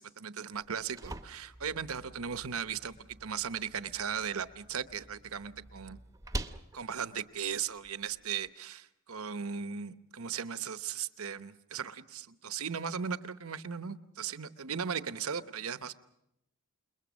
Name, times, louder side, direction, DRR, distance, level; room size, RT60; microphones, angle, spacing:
voice 1, 0.0-2.9 3.2-6.0 6.7-15.9, right 7 dB, 70° right, 12 dB, 0.9 m, -37 dB
sound 1, 0.5-8.5, right 1 dB, 15° right, 0.9 m, -46 dB
28.0 x 22.0 x 6.3 m, 0.83 s
head